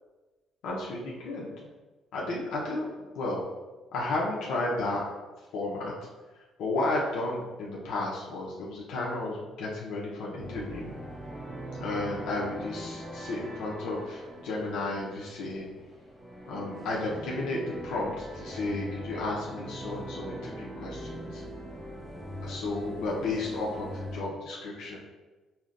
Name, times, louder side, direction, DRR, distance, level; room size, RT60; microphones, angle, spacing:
voice 1, 0.6-1.5 2.1-2.9 3.1-3.4 3.9-5.0 5.5-5.9 6.6-10.9 11.8-15.7 16.4-21.4 22.4-25.0, left 2 dB, 80° left, -4 dB, 0.7 m, -33 dB
sound 1, 10.4-24.2, equal, 15° right, 0.5 m, -41 dB
5.5 x 2.1 x 2.4 m, 1.2 s
cardioid pair, 170°, 0 cm